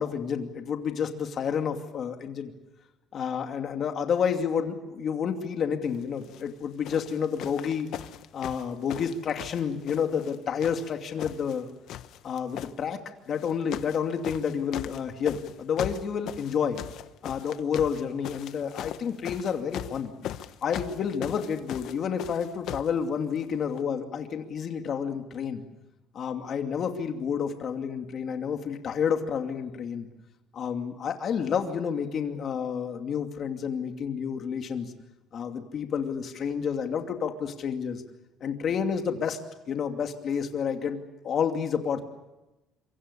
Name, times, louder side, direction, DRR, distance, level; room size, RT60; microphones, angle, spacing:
voice 1, 0.0-2.5 3.1-7.9 8.3-11.7 12.2-16.8 17.2-20.1 20.6-25.6 26.1-30.1 30.5-34.9 35.3-38.0 38.4-39.4 39.7-42.0, left 7 dB, 40° left, 5 dB, 2.6 m, -30 dB
sound 1, 6.2-6.5 6.8-10.3 10.6-11.6 11.9-12.7 13.4-14.0 14.2-22.9 23.8-23.9, left 12 dB, 65° left, 1.0 m, -39 dB
26.5 x 24.5 x 7.0 m, 0.99 s
cardioid pair, 155°, 0 cm